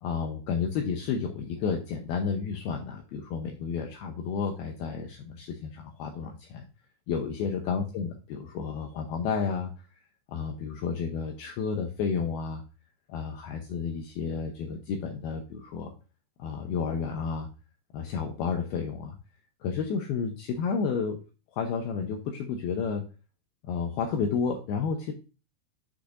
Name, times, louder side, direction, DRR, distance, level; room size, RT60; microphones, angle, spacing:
voice 1, 0.0-6.6 7.1-9.7 10.3-12.6 13.1-15.9 16.4-17.5 17.9-19.2 19.6-21.2 21.5-23.0 23.7-25.1, left 6 dB, 75° left, 3 dB, 2.3 m, -31 dB
7.9 x 6.6 x 2.5 m, 0.32 s
omnidirectional pair, 5.2 m